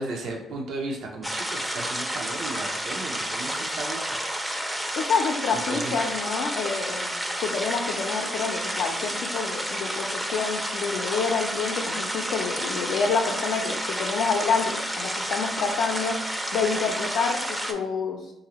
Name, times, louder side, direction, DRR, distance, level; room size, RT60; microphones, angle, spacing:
voice 1, 0.0-4.7 5.5-5.9, right 2 dB, 75° right, 1 dB, 0.6 m, -35 dB
sound 1, 1.2-17.7, equal, 5° right, 0.4 m, -30 dB
voice 2, 5.0-7.1 7.4-16.2 16.5-18.3, left 5 dB, 80° left, 1 dB, 0.4 m, -28 dB
3.9 x 2.6 x 2.9 m, 0.89 s
cardioid pair, 90°, 0 cm